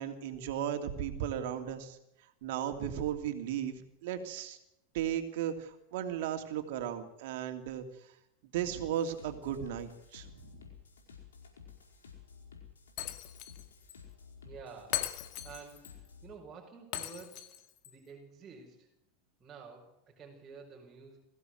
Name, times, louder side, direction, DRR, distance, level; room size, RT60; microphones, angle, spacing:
voice 1, 0.0-2.0 2.4-4.6 4.9-8.1 8.5-10.6, right 10 dB, 65° right, 6 dB, 2.8 m, -36 dB
sound 1, 8.7-16.3, left 6 dB, 85° left, 4.8 m, -53 dB
Shatter, 13.0-13.6 13.9-14.0 14.9-15.9 16.9-17.9, left 13 dB, 55° left, 1.9 m, -38 dB
voice 2, 14.4-17.5 17.9-18.9 19.4-21.2, right 5 dB, 20° right, -2 dB, 5.3 m, -51 dB
22.0 x 15.5 x 8.0 m, 0.84 s
hypercardioid pair, 95°, 0 cm